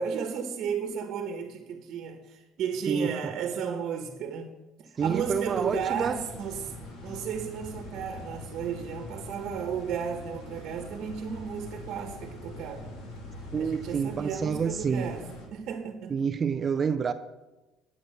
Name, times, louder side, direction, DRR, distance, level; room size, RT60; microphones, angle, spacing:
voice 1, 0.0-4.5 4.8-6.7 7.0-12.9 13.6-15.2 15.5-16.2, right 7 dB, 55° right, 1.3 m, -34 dB
sound 1, 5.0-15.5, left 1 dB, 80° left, 3.3 m, -43 dB
voice 2, 5.0-6.2 13.5-15.1 16.1-17.1, right 6 dB, 30° right, 0.5 m, -28 dB
11.0 x 8.4 x 6.5 m
cardioid pair, 155°, 0 cm